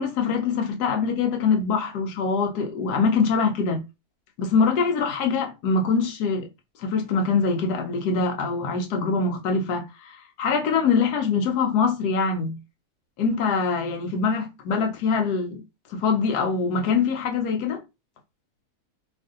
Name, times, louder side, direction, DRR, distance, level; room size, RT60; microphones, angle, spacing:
voice 1, 0.0-3.8 4.4-6.5 6.8-12.6 13.2-15.6 15.9-17.8, left 5 dB, 85° left, 1.3 m, -24 dB
3.1 x 2.5 x 3.7 m
omnidirectional pair, 1.6 m